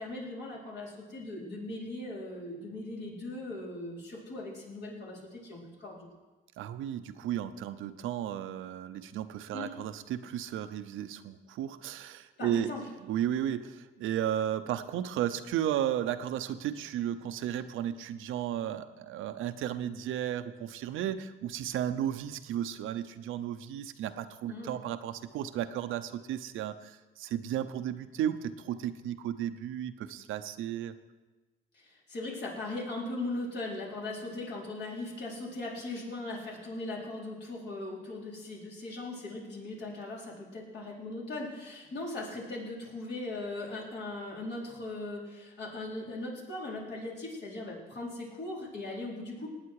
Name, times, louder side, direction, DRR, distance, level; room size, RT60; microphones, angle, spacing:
voice 1, 0.0-6.1 9.5-9.7 12.4-12.8 24.5-24.8 31.7-49.5, left 2 dB, 60° left, -4 dB, 4.5 m, -39 dB
voice 2, 6.6-12.7 13.0-30.9, right 11 dB, 85° right, 10 dB, 0.7 m, -34 dB
19.0 x 9.1 x 4.8 m, 1.2 s
cardioid pair, 90°, 20 cm